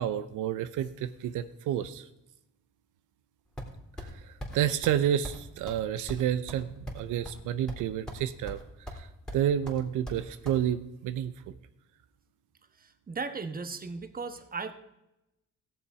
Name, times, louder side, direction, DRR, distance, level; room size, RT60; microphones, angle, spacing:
voice 1, 0.0-2.1 4.0-8.6 8.9-9.1 9.3-11.3, right 10 dB, 85° right, 12 dB, 0.7 m, -30 dB
sound 1, 3.6-4.1 4.4-4.6 4.8-5.0 5.2-5.4 5.7-5.8 6.1-7.4 7.7-8.2 8.5-9.0 9.3-10.6, equal, ahead, 2.8 m, -40 dB
voice 2, 13.1-14.7, right 4 dB, 30° right, 9 dB, 1.2 m, -36 dB
16.5 x 7.1 x 4.9 m, 0.90 s
cardioid pair, 90°, 30 cm